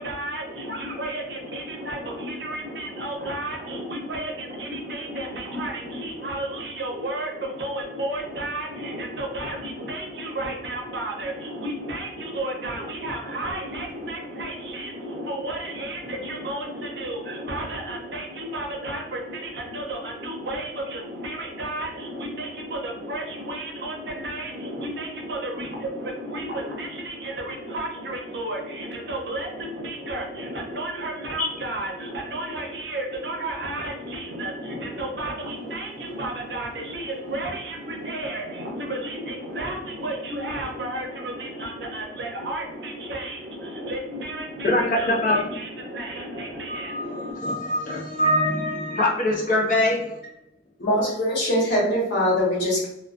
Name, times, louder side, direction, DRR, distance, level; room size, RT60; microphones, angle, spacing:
voice 1, 0.0-47.3, right 1 dB, 65° right, 0 dB, 0.6 m, -32 dB
voice 2, 44.6-45.4 46.7-50.0, left 1 dB, 45° left, -2 dB, 0.5 m, -23 dB
voice 3, 50.8-52.9, equal, 70° left, -5 dB, 1.1 m, -22 dB
2.4 x 2.2 x 2.4 m, 0.88 s
head